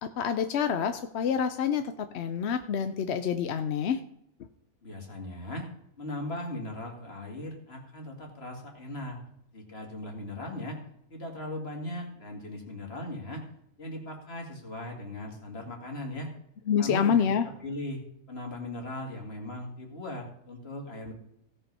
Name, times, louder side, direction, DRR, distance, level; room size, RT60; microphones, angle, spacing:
voice 1, 0.0-4.0 16.7-17.5, left 7 dB, 60° left, 9 dB, 0.8 m, -27 dB
voice 2, 4.8-5.7 6.0-10.8 11.1-13.4 13.8-16.3 16.8-17.3 17.6-18.0 18.3-21.1, left 1 dB, 40° left, 1 dB, 2.6 m, -38 dB
16.5 x 5.7 x 5.4 m, 0.74 s
omnidirectional pair, 1.6 m